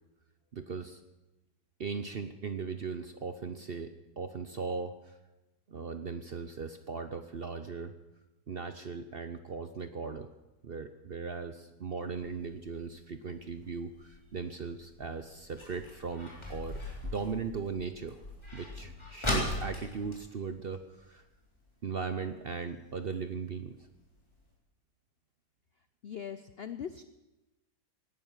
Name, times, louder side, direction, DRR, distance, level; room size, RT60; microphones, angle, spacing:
voice 1, 0.5-1.0 1.8-5.2 5.7-7.9 8.5-10.3 10.6-18.2 18.5-21.2 21.8-23.8, right 5 dB, 50° right, 9 dB, 0.7 m, -38 dB
sound 1, 12.1-21.4 21.7-21.8 22.0-22.4 22.9-23.0 23.5-23.6 23.9-24.0 24.4-24.5, left 1 dB, 15° left, 3.7 m, -39 dB
voice 2, 26.0-27.0, left 8 dB, 65° left, 11 dB, 0.6 m, -40 dB
18.0 x 11.0 x 7.3 m, 1.0 s
omnidirectional pair, 1.8 m